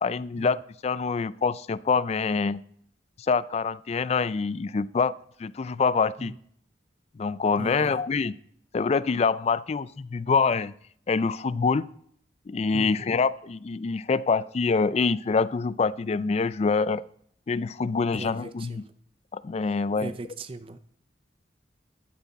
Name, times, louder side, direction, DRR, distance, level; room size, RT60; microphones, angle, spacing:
voice 1, 0.0-2.6 3.2-6.3 7.2-8.3 8.7-10.7 11.1-11.9 12.5-17.0 17.5-18.8 19.3-20.1, left 4 dB, 35° left, 19 dB, 0.3 m, -25 dB
voice 2, 7.6-8.0 12.7-13.1 18.1-18.9 20.0-20.8, right 3 dB, 30° right, 12 dB, 0.5 m, -38 dB
11.5 x 8.3 x 4.1 m, 0.64 s
head